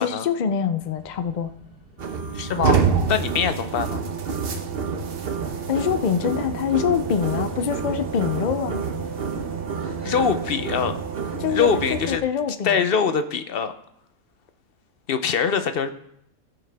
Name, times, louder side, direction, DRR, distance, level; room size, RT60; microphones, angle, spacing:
voice 1, 0.0-1.5 5.7-8.9 11.4-11.7 12.1-12.9, left 7 dB, 85° left, 10 dB, 0.4 m, -24 dB
sound 1, 0.8-9.8, equal, 85° right, 3.0 m, -44 dB
sound 2, 2.0-12.2, right 6 dB, 50° right, 0.9 m, -27 dB
voice 2, 2.3-4.0 9.8-11.0 11.5-12.2 12.6-13.7 15.1-15.9, left 6 dB, 55° left, 9 dB, 0.7 m, -23 dB
16.5 x 5.7 x 3.4 m, 0.75 s
omnidirectional pair, 1.5 m